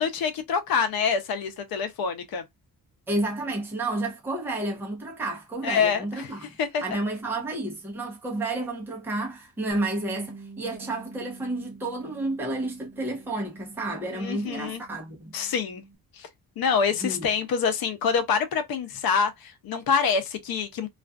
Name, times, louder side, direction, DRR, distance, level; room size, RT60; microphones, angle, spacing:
voice 1, 0.0-2.4 5.6-6.3 6.6-6.8 14.1-14.8 15.3-15.8 16.2-16.3 16.6-20.9, left 6 dB, 75° left, 0.7 m, -26 dB
voice 2, 3.1-6.5 6.8-15.3 17.0-17.3, right 2 dB, 5° right, 0.6 m, -31 dB
Bass guitar, 9.7-16.0, right 4 dB, 60° right, 0.7 m, -47 dB
2.4 x 2.3 x 2.3 m
wide cardioid pair, 160°, 37 cm